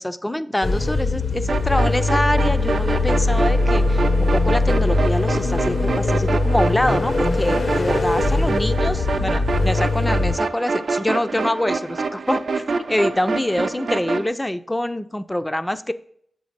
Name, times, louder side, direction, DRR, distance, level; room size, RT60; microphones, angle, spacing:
voice 1, 0.0-12.6 12.9-15.9, left 1 dB, 10° left, 12 dB, 0.4 m, -25 dB
sound 1, 0.6-10.4, left 2 dB, 55° left, 0.6 m, -21 dB
sound 2, 1.5-14.3, right 4 dB, 65° right, 0.6 m, -26 dB
7.2 x 4.0 x 5.0 m, 0.66 s
wide cardioid pair, 130°, 0 cm